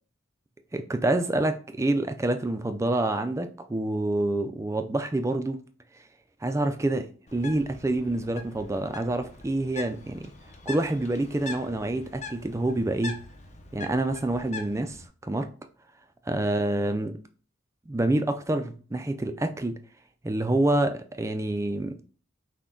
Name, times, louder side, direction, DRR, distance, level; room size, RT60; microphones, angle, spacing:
voice 1, 0.7-5.6 6.4-10.3 10.7-13.2 13.7-15.5 16.3-17.2 17.9-19.8 20.2-22.0, right 2 dB, 15° right, 0.3 m, -27 dB
Bird, 7.3-15.1, left 4 dB, 35° left, 0.6 m, -43 dB
5.9 x 2.2 x 3.7 m
head